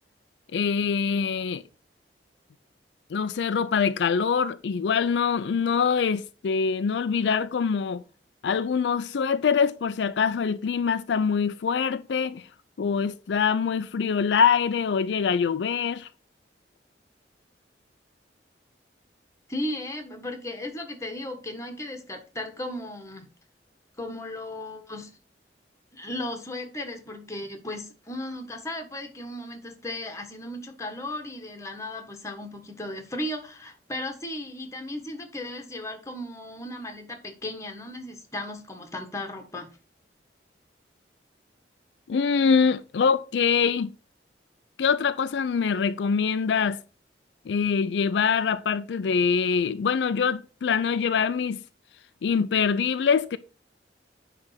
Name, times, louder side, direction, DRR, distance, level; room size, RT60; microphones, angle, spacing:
voice 1, 0.5-1.6 3.1-8.0 8.4-12.5 12.8-16.1 42.1-43.9 44.8-46.8 47.5-51.6 52.2-53.4, left 6 dB, 80° left, 0.4 m, -24 dB
voice 2, 19.5-23.2 24.0-25.1 25.9-39.7, left 1 dB, 15° left, 1.4 m, -36 dB
9.7 x 3.3 x 5.7 m
head